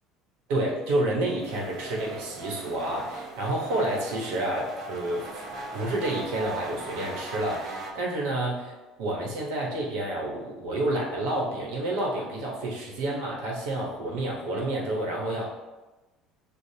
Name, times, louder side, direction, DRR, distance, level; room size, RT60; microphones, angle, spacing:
voice 1, 0.5-5.4 5.7-8.7 9.0-15.4, right 1 dB, 80° right, -2 dB, 1.2 m, -29 dB
sound 1, 1.4-7.9, right 3 dB, 55° right, 1.2 m, -39 dB
6.6 x 2.4 x 2.8 m, 1.1 s
supercardioid pair, 90°, 0 cm